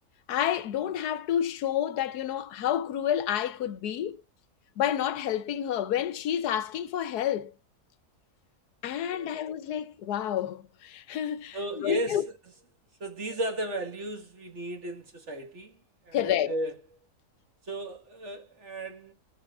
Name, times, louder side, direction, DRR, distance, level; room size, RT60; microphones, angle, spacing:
voice 1, 0.3-4.2 4.8-7.5 8.8-12.2 16.1-16.6, left 10 dB, 85° left, 1.3 m, -29 dB
voice 2, 11.5-12.2 13.0-15.7 16.0-16.7 17.6-19.1, right 1 dB, 50° right, 2.0 m, -35 dB
20.5 x 7.6 x 2.4 m
omnidirectional pair, 1.6 m